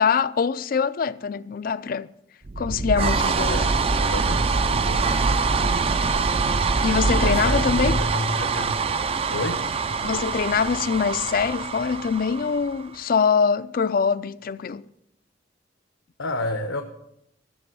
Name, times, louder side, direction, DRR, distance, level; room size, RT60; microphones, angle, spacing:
voice 1, 0.0-2.1 2.6-3.6 6.8-8.0 10.0-14.8, left 6 dB, 45° left, 0.4 m, -23 dB
sound 1, 2.4-13.0, right 4 dB, 30° right, 0.4 m, -24 dB
voice 2, 3.5-5.1 5.6-5.9 7.1-8.9 9.3-9.7 16.2-16.8, left 1 dB, 90° left, 1.0 m, -31 dB
13.5 x 6.9 x 6.1 m
head